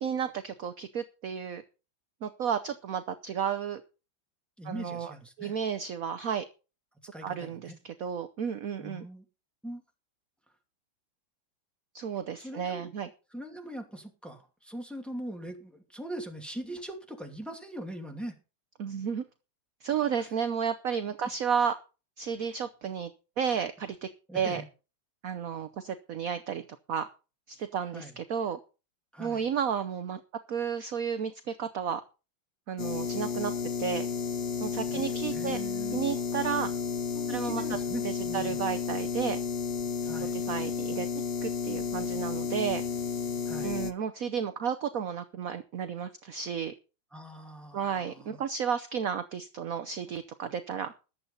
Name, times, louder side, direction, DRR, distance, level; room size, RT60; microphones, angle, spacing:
voice 1, 0.0-1.6 2.2-3.8 4.6-6.4 7.2-9.1 11.9-13.1 18.8-19.2 19.8-21.7 22.2-23.1 23.4-24.1 24.3-24.6 25.2-27.1 27.5-28.6 29.2-30.2 30.5-32.0 32.7-33.5 33.8-34.1 34.6-35.6 35.9-36.7 37.3-37.6 38.0-39.4 40.3-41.1 41.4-42.8 43.6-46.7 47.7-50.9, right 7 dB, 55° right, 10 dB, 1.0 m, -32 dB
voice 2, 4.6-5.5 7.1-7.8 8.8-9.2 9.6-9.8 12.4-12.9 13.3-18.4 24.3-24.6 27.9-28.1 29.1-29.5 34.9-36.1 37.1-38.6 40.0-40.4 43.5-43.8 47.1-48.4, right 1 dB, ahead, 2 dB, 2.4 m, -41 dB
sound 1, 32.8-43.9, left 6 dB, 50° left, 0.7 m, -32 dB
14.5 x 10.5 x 4.1 m, 0.32 s
omnidirectional pair, 2.2 m